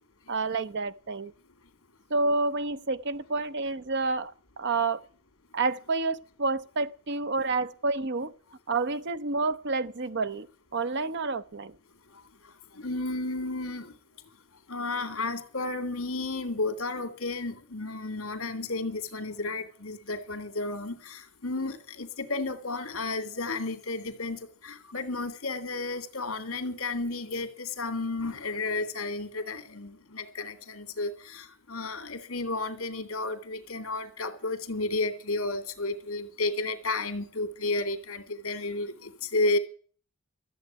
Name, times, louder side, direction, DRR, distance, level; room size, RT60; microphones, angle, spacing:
voice 1, 0.3-1.3 2.1-5.0 5.5-8.3 8.7-10.5 10.7-11.7, right 3 dB, 50° right, 0.8 m, -29 dB
voice 2, 12.7-13.9 14.7-39.6, left 2 dB, 70° left, 2.3 m, -32 dB
14.0 x 7.4 x 9.1 m
head